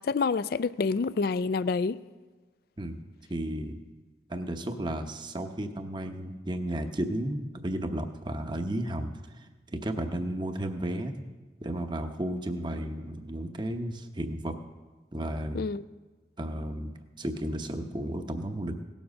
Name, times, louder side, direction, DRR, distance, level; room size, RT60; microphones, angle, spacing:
voice 1, 0.0-2.0 15.5-15.8, left 4 dB, 55° left, 0.4 m, -27 dB
voice 2, 3.3-3.8 4.3-9.5 9.7-11.2 11.6-14.6 15.1-15.7 16.4-16.9 17.2-18.7, right 1 dB, 25° right, 0.8 m, -33 dB
17.5 x 7.2 x 6.4 m
head